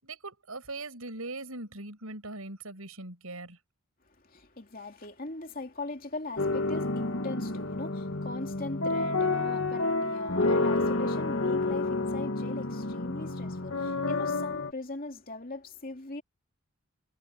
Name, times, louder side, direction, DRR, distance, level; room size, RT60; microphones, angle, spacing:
voice 1, 0.0-3.6, right 2 dB, 80° right, 6.5 m, -40 dB
voice 2, 4.2-16.2, left 2 dB, 40° left, 2.8 m, -40 dB
sound 1, 6.4-14.7, left 2 dB, 60° left, 1.9 m, -29 dB
head